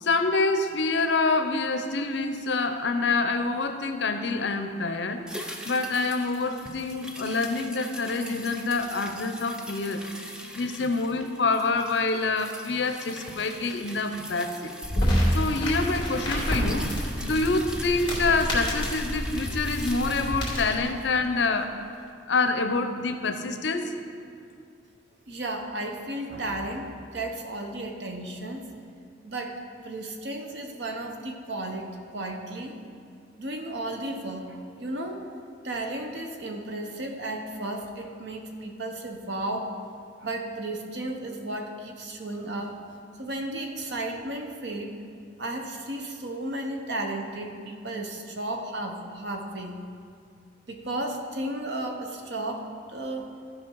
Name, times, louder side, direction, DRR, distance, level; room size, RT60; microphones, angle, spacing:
voice 1, 0.0-5.2 5.7-10.0 10.5-14.7 15.3-21.8 22.3-23.9, left 3 dB, 70° left, 8 dB, 0.7 m, -26 dB
sound 1, 5.3-21.8 22.1-22.2, equal, 5° right, 0.5 m, -42 dB
sound 2, 14.8-20.8, equal, 25° left, 2.5 m, -28 dB
voice 2, 25.3-28.7 29.2-32.7 33.4-35.3 35.6-39.7 40.2-42.8 43.2-45.0 45.4-49.8 50.7-53.3, right 1 dB, 65° right, 3 dB, 1.0 m, -34 dB
14.0 x 5.3 x 4.6 m, 2.4 s
head